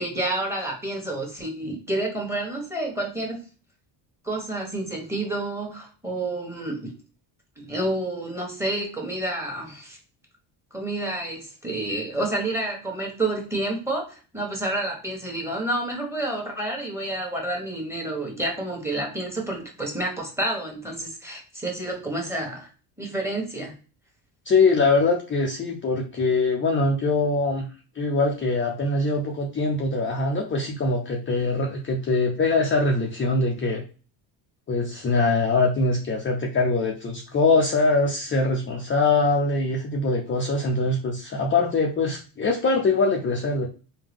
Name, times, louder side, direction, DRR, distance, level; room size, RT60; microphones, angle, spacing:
voice 1, 0.0-3.4 4.2-6.9 7.6-10.0 10.7-22.7 23.0-23.7, right 1 dB, 5° right, 1 dB, 1.5 m, -29 dB
voice 2, 24.5-27.7 27.9-33.8 34.7-43.7, left 3 dB, 25° left, 0 dB, 0.6 m, -23 dB
3.6 x 2.3 x 3.5 m, 0.36 s
supercardioid pair, 75°, 49 cm